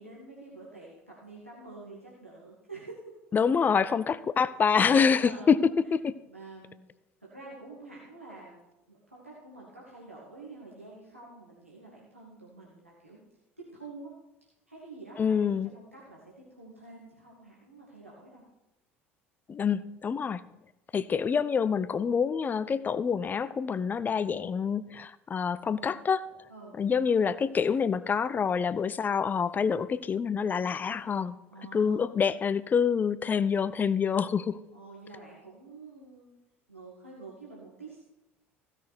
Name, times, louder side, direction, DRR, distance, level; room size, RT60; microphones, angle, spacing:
voice 1, 0.0-3.1 5.0-5.6 6.3-6.8 7.2-8.6 8.9-13.2 13.6-14.1 14.7-18.4 24.2-24.5 26.5-26.8 31.5-32.1 34.7-36.3 36.7-38.0, right 3 dB, 90° right, -6 dB, 1.9 m, -48 dB
voice 2, 3.3-5.6 5.9-6.1 15.2-15.7 19.5-20.4 20.9-26.2 26.8-31.4 31.7-34.6, left 6 dB, 25° left, 17 dB, 0.5 m, -26 dB
16.0 x 6.2 x 4.3 m, 0.97 s
figure-of-eight pair, 60°, 7 cm